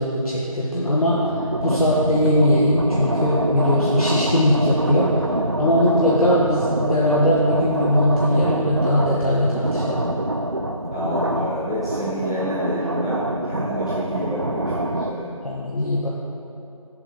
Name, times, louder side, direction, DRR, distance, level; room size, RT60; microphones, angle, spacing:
voice 1, 0.0-5.2 5.6-10.0 15.4-16.1, left 1 dB, 80° left, -6 dB, 1.3 m, -20 dB
sound 1, 0.9-15.1, right 1 dB, 45° right, 0.4 m, -25 dB
voice 2, 10.9-15.3, equal, 10° left, -14 dB, 1.0 m, -28 dB
7.3 x 7.2 x 4.3 m, 2.7 s
figure-of-eight pair, 170°, 18 cm